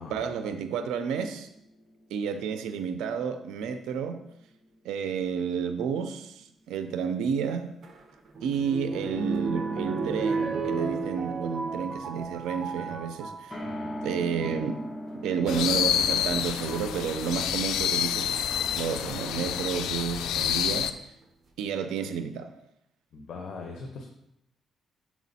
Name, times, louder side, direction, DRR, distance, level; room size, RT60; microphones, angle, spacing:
voice 1, 0.0-1.5 2.1-4.2 4.8-7.7 8.4-13.6 14.0-14.8 15.1-20.9 21.6-22.5, right 7 dB, 90° right, 9 dB, 0.5 m, -31 dB
sound 1, 1.4-5.0 5.3-5.4 13.5-19.7, equal, 15° left, 1.1 m, -42 dB
sound 2, 7.8-13.5 14.2-14.6 15.9-16.0 16.7-17.0 19.1-19.8 20.4-20.5 20.7-20.8, right 4 dB, 45° right, 1.1 m, -33 dB
Japan Yukinoura Bamboo Forest and Road, 15.5-20.9, left 10 dB, 85° left, 0.3 m, -28 dB
voice 2, 23.1-24.0, left 4 dB, 55° left, 2 dB, 0.9 m, -40 dB
5.9 x 4.6 x 4.1 m, 0.80 s
cardioid pair, 90°, 0 cm